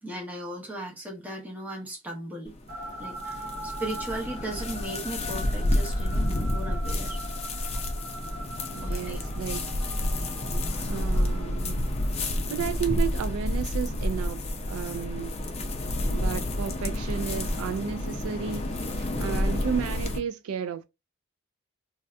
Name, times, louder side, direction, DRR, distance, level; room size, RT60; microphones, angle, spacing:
voice 1, 0.0-2.5 3.0-7.3 8.8-9.2 9.5-9.6 10.4-10.9 16.0-16.4, right 1 dB, 10° right, 0.8 m, -37 dB
sound 1, 2.5-20.2, left 1 dB, 30° left, 0.4 m, -29 dB
sound 2, 2.7-12.1, right 1 dB, 40° right, 1.0 m, -41 dB
voice 2, 8.7-9.7 10.8-11.9 12.2-14.4 14.7-15.4 16.1-20.8, right 7 dB, 75° right, 0.3 m, -33 dB
2.6 x 2.3 x 3.2 m
head